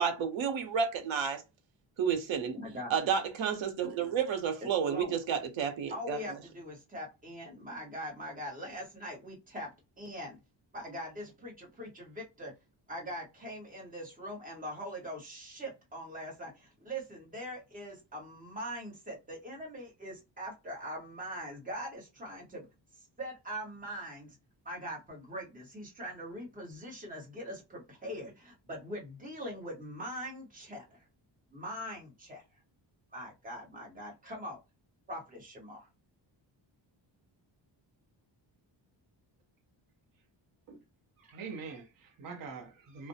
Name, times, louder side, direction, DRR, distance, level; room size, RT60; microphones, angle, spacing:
voice 1, 0.0-1.4 2.0-2.6 2.9-6.4, right 7 dB, 90° right, 0.8 m, -31 dB
voice 2, 2.5-2.9 4.9-5.2 5.9-9.7 10.0-10.4 10.7-12.5 12.9-22.6 23.2-24.3 24.6-31.0 31.5-32.4 33.1-34.6 35.1-35.9, equal, 20° right, 1.0 m, -42 dB
voice 3, 41.2-43.1, right 5 dB, 50° right, 0.6 m, -44 dB
2.4 x 2.1 x 2.6 m
wide cardioid pair, 160°, 45 cm